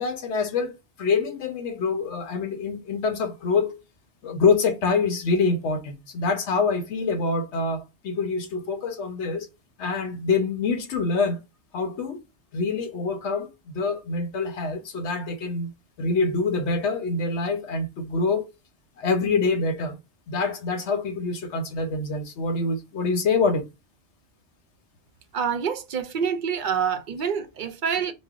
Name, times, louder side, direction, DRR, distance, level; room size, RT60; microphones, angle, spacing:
voice 1, 0.0-3.8 4.2-9.5 9.8-11.4 11.7-12.2 12.5-15.7 16.0-18.4 19.0-20.0 20.3-23.6, left 4 dB, 85° left, 1.1 m, -25 dB
voice 2, 25.3-28.1, right 7 dB, 55° right, 0.6 m, -27 dB
5.2 x 2.2 x 2.4 m
omnidirectional pair, 1.1 m